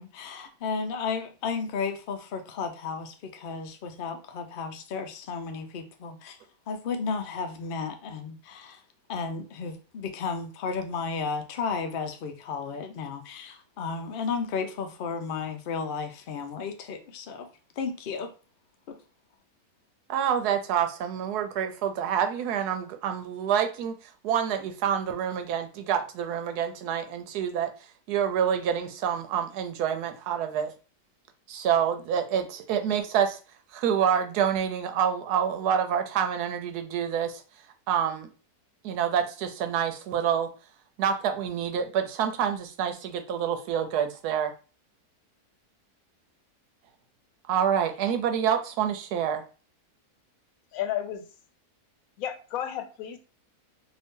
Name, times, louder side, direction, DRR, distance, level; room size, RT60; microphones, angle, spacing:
voice 1, 0.0-6.4 6.7-8.8 9.1-17.5 17.8-18.3 18.9-19.0, left 5 dB, 85° left, 0.4 m, -33 dB
voice 2, 20.1-24.0 24.2-27.7 28.1-30.7 31.5-33.4 33.7-37.4 37.9-38.3 38.8-40.5 41.0-44.5 47.5-49.4, right 8 dB, 85° right, 1.2 m, -27 dB
voice 3, 50.7-51.2 52.2-53.2, left 10 dB, 70° left, 0.9 m, -32 dB
2.7 x 2.6 x 3.5 m
omnidirectional pair, 1.6 m